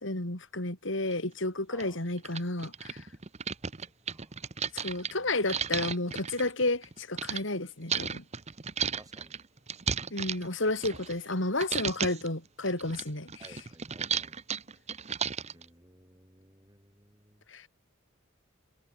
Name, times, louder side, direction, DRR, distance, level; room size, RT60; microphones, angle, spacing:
voice 1, 0.0-3.1 4.7-8.2 10.1-13.7 17.5-17.7, left 2 dB, 65° left, 4.0 m, -32 dB
sound 1, 1.1-1.2 1.8-1.9 2.2-7.4 7.9-11.3 11.6-12.3 12.7-15.7, right 7 dB, 35° right, 1.0 m, -34 dB
voice 2, 4.1-4.5 5.1-5.3 9.0-9.4 13.4-14.4 15.5-17.4, right 1 dB, 20° right, 5.8 m, -56 dB
head